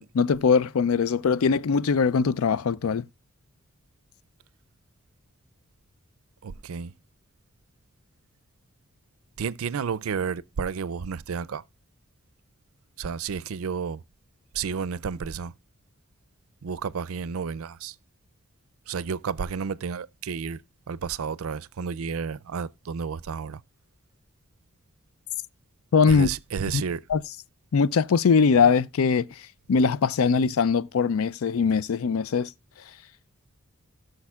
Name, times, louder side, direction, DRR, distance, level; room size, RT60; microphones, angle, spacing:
voice 1, 0.2-3.0 25.9-26.3 26.7-26.8 27.1-27.2 27.7-29.3 29.7-32.5, left 5 dB, 85° left, 0.4 m, -21 dB
voice 2, 6.4-6.9 9.4-11.6 13.0-14.0 14.5-15.5 16.6-17.9 18.9-20.6 20.9-23.6 26.1-27.0, right 6 dB, 85° right, 0.5 m, -31 dB
17.0 x 6.6 x 2.3 m
head